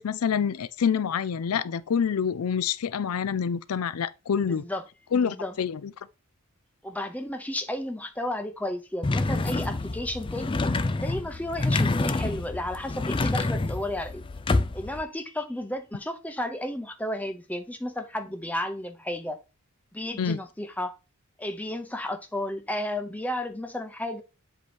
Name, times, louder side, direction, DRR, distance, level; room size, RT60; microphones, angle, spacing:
voice 1, 0.0-4.6 5.1-5.9 20.2-20.4, left 7 dB, 80° left, 0.4 m, -27 dB
voice 2, 4.5-4.8 5.2-5.6 6.8-10.6 11.0-14.2 14.7-19.4 19.9-20.9 21.4-24.2, left 1 dB, 5° left, 0.8 m, -33 dB
sound 1, 9.0-15.0, left 2 dB, 25° left, 0.4 m, -27 dB
7.8 x 3.1 x 5.0 m
head